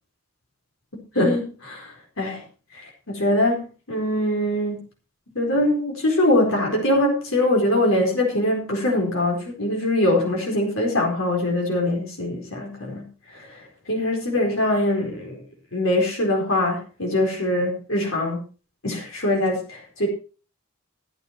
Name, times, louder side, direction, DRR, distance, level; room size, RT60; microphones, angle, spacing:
voice 1, 1.1-2.4 2.7-4.8 5.3-13.0 13.3-15.4 15.7-18.4 18.8-20.1, left 1 dB, 70° left, 0 dB, 4.4 m, -23 dB
14.5 x 9.4 x 4.4 m, 0.35 s
head